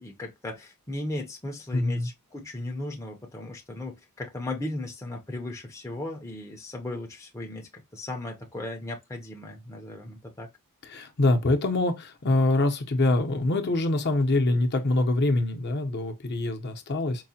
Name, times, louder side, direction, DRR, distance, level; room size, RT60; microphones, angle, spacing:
voice 1, 0.0-10.5, left 1 dB, 15° left, 0.6 m, -36 dB
voice 2, 1.7-2.1 10.9-17.2, left 2 dB, 50° left, 0.7 m, -24 dB
4.6 x 2.1 x 2.7 m
head